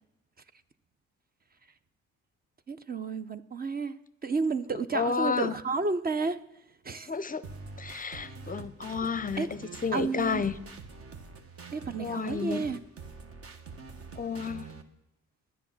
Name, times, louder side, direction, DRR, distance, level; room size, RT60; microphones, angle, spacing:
voice 1, 2.7-3.9 4.2-6.4 6.8-7.1 8.3-8.4 9.4-9.5 9.9-10.4 11.7-12.8, right 4 dB, 30° right, 13 dB, 0.6 m, -31 dB
voice 2, 4.9-5.5 7.1-7.4 7.8-9.5 9.8-10.5 12.0-12.6 14.2-14.7, left 5 dB, 30° left, 15 dB, 0.6 m, -31 dB
sound 1, 7.4-14.8, right 4 dB, 50° right, 1.3 m, -45 dB
10.5 x 10.0 x 7.3 m, 0.88 s
cardioid pair, 90°, 30 cm